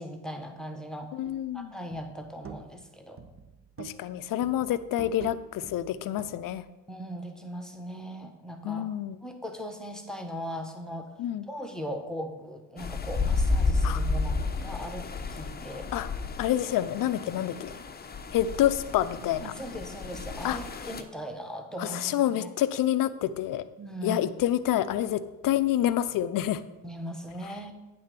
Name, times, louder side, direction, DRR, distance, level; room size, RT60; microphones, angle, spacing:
voice 1, 0.0-1.1 1.5-3.2 6.9-8.9 9.2-11.1 11.5-15.9 19.4-22.5 23.8-24.3 25.5-25.6 26.8-27.7, equal, ahead, 4 dB, 1.3 m, -39 dB
voice 2, 1.1-1.7 3.8-6.6 8.6-9.2 11.2-11.5 13.8-14.0 15.9-16.1 16.4-17.7 18.3-19.5 20.4-20.6 21.8-23.6 24.0-26.6, left 12 dB, 50° left, 13 dB, 0.6 m, -28 dB
sound 1, 1.2-1.5 1.9-2.9 3.2-4.2 4.4-6.7, right 6 dB, 30° right, 0.8 m, -47 dB
sound 2, 12.8-21.0, left 3 dB, 20° left, 0.8 m, -31 dB
8.8 x 3.9 x 6.8 m, 1.1 s
hypercardioid pair, 60°, 43 cm